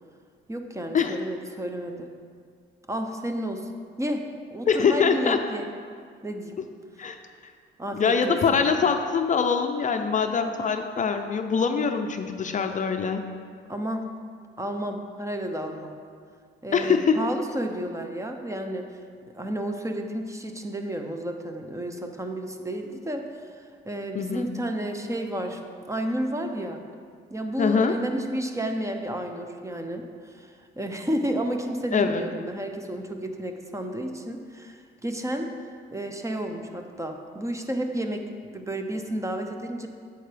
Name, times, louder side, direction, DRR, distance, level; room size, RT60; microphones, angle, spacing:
voice 1, 0.5-2.1 2.9-3.7 4.0-5.7 6.2-6.5 7.8-8.6 13.7-14.1 14.6-15.9 16.6-18.9 19.3-25.6 25.9-26.8 27.3-35.5 35.9-38.3 38.5-39.9, right 1 dB, 15° right, 5 dB, 0.6 m, -31 dB
voice 2, 4.7-5.4 7.0-7.2 7.9-13.2 16.7-17.2 24.1-24.5 27.6-28.0 31.9-32.2, left 6 dB, 40° left, 6 dB, 0.5 m, -23 dB
8.6 x 6.8 x 3.4 m, 2.1 s
cardioid pair, 90°, 20 cm